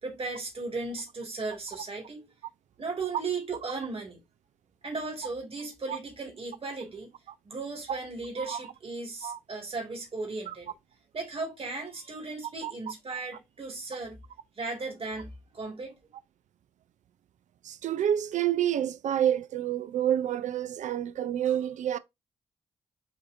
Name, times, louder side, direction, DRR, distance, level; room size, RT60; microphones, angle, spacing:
voice 1, 0.0-2.3 2.8-4.2 4.8-7.1 7.4-10.7 11.1-14.2 14.6-16.0, right 3 dB, 45° right, 2.1 m, -36 dB
voice 2, 17.6-22.0, right 10 dB, 65° right, 0.4 m, -28 dB
7.2 x 2.7 x 2.6 m
hypercardioid pair, 40°, 13 cm